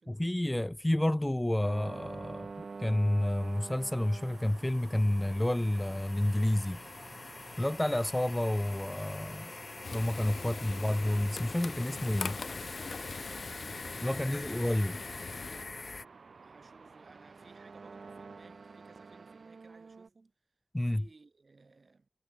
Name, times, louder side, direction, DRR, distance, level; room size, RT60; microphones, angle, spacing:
voice 1, 0.1-2.5 2.8-6.8 7.6-9.5 9.9-12.4 14.0-14.9 20.7-21.0, left 1 dB, 15° left, 0.6 m, -30 dB
sound 1, 1.6-20.1, right 4 dB, 80° right, 2.4 m, -49 dB
sound 2, 2.2-16.1, left 3 dB, 50° left, 1.2 m, -46 dB
Frying (food), 9.8-15.7, left 4 dB, 80° left, 0.4 m, -42 dB
voice 2, 10.4-10.7 13.3-14.6 16.4-20.3 20.8-22.1, right 3 dB, 60° right, 5.2 m, -60 dB
wide cardioid pair, 95°, 0 cm